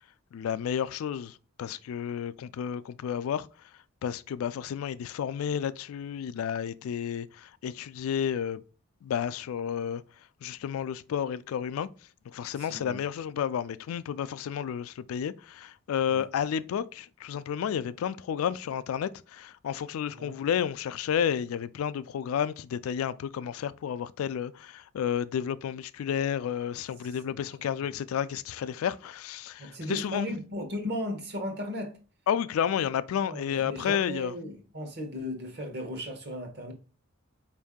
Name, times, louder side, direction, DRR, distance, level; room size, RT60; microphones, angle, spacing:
voice 1, 0.3-3.5 4.0-8.6 9.0-10.0 10.4-11.9 12.3-30.2 32.3-34.3, left 8 dB, 85° left, 0.3 m, -31 dB
voice 2, 12.6-13.0 16.1-16.3 20.1-20.3 27.3-27.4 27.7-27.8 29.6-32.0 33.2-36.7, left 1 dB, 50° right, 1.0 m, -36 dB
4.6 x 2.6 x 3.5 m
head